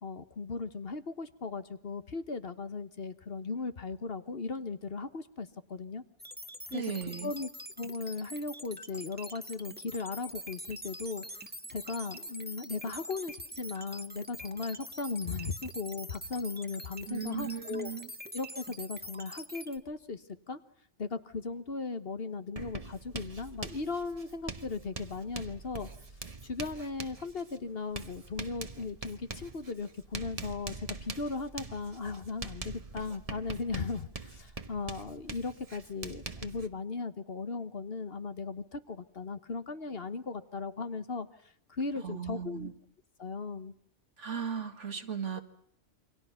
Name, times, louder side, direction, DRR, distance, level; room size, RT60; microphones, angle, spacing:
voice 1, 0.0-6.0 6.7-6.8 7.2-7.5 7.8-11.2 11.7-17.9 18.3-20.2 20.5-20.6 21.0-25.9 26.4-41.3 41.7-42.7 43.2-43.7, left 4 dB, 55° left, 10 dB, 1.5 m, -37 dB
sound 1, 6.2-19.8, equal, 10° right, 1.5 m, -44 dB
voice 2, 6.7-7.3 17.1-18.1 42.0-42.7 44.2-45.4, right 7 dB, 80° right, 7 dB, 2.3 m, -36 dB
Writing, 22.6-36.7, right 3 dB, 30° right, 1.3 m, -44 dB
28.5 x 25.0 x 5.8 m, 0.68 s
omnidirectional pair, 1.2 m